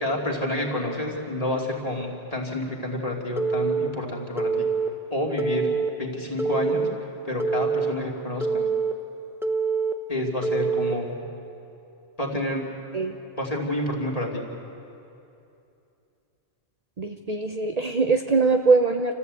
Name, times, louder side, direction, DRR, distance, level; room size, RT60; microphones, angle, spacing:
voice 1, 0.0-4.7 5.1-5.7 6.0-6.9 7.2-8.6 10.1-11.2 12.2-12.7 13.4-14.4, left 1 dB, 35° left, -1 dB, 2.7 m, -29 dB
Telephone, 3.4-3.9 4.4-4.9 5.4-5.9 6.4-6.9 7.4-7.9 8.4-8.9 9.4-9.9 10.4-10.9, right 5 dB, ahead, 0.9 m, -25 dB
voice 2, 17.0-19.1, right 4 dB, 40° right, 4 dB, 0.8 m, -22 dB
28.0 x 14.5 x 8.3 m, 2.7 s
omnidirectional pair, 1.1 m